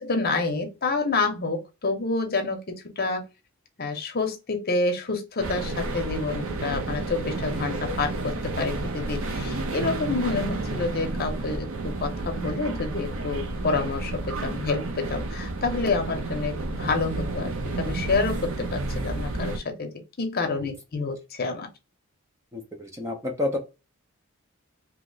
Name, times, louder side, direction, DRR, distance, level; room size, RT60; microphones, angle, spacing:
voice 1, 0.0-3.2 3.8-19.9 20.2-21.7, left 3 dB, 45° left, 0.7 m, -28 dB
sound 1, 5.4-19.6, right 2 dB, 65° right, 0.6 m, -31 dB
voice 2, 22.5-23.6, left 2 dB, 15° right, 0.5 m, -30 dB
2.9 x 2.1 x 3.8 m
head